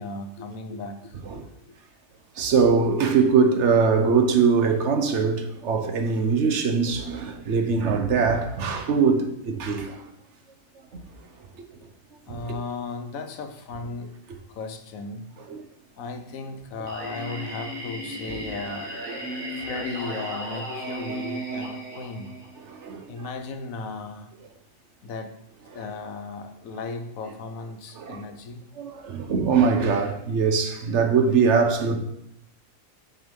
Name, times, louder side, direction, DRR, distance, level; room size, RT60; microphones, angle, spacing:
voice 1, 0.0-1.2 12.3-14.2 14.5-15.3 16.0-18.9 19.5-22.3 23.1-24.3 25.0-25.4 25.7-28.6, left 3 dB, 90° left, 1.3 m, -36 dB
voice 2, 2.4-10.0 12.3-12.4 15.5-15.6 18.3-18.4 19.1-19.7 22.6-23.1 28.0-28.2 28.8-32.0, right 5 dB, 65° right, 1.1 m, -22 dB
Singing, 16.9-22.8, right 1 dB, 80° right, 2.0 m, -35 dB
6.4 x 4.8 x 5.3 m
omnidirectional pair, 1.4 m